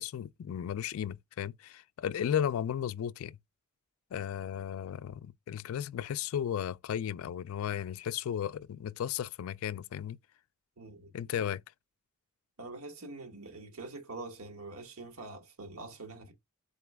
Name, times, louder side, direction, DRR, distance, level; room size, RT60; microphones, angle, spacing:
voice 1, 0.0-3.4 4.1-10.2 11.1-11.6, left 9 dB, 75° left, 0.3 m, -35 dB
voice 2, 10.8-11.1 12.6-16.3, right 3 dB, 80° right, 1.2 m, -45 dB
4.2 x 3.0 x 3.3 m
head